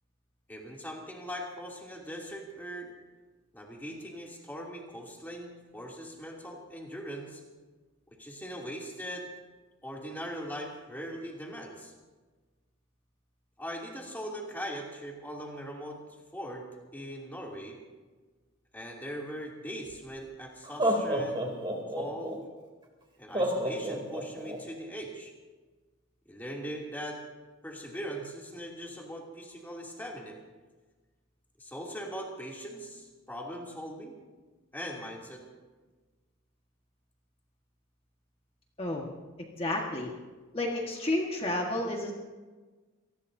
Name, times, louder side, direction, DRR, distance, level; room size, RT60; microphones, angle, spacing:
voice 1, 0.5-2.9 3.5-7.4 8.2-9.3 9.8-11.9 13.6-16.0 16.3-16.7 16.9-17.8 18.7-21.5 22.0-22.4 23.2-25.3 26.3-27.2 27.6-30.4 31.6-34.1 34.7-35.4, equal, 10° left, -2 dB, 2.7 m, -40 dB
Laughter, 19.9-20.0 20.6-22.4 23.3-24.6, right 1 dB, 25° right, 2.9 m, -29 dB
voice 2, 39.6-40.1 40.5-42.1, left 1 dB, 25° left, 0 dB, 1.5 m, -31 dB
26.5 x 19.0 x 2.7 m, 1.3 s
head